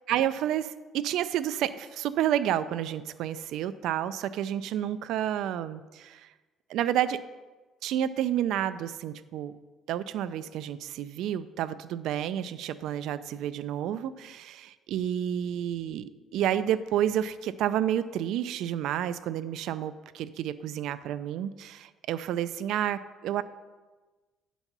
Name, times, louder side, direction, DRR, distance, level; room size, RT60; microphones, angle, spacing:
voice 1, 0.1-6.3 6.7-7.2 7.8-9.5 9.9-23.4, right 11 dB, 70° right, 13 dB, 0.3 m, -30 dB
9.8 x 4.0 x 5.9 m, 1.3 s
cardioid pair, 160°, 0 cm